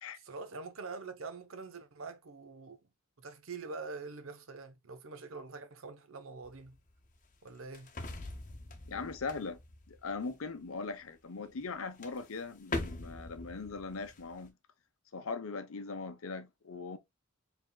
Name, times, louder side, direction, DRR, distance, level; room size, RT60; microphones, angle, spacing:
voice 1, 0.2-2.8 3.2-6.8 7.4-7.9, right 4 dB, 70° right, 0.8 m, -45 dB
sound 1, 6.4-10.7 11.6-11.7 12.0-14.5, left 2 dB, 40° left, 0.9 m, -43 dB
voice 2, 8.9-9.6 9.9-14.5 15.1-17.0, left 4 dB, 85° left, 0.8 m, -40 dB
4.8 x 3.5 x 2.2 m
head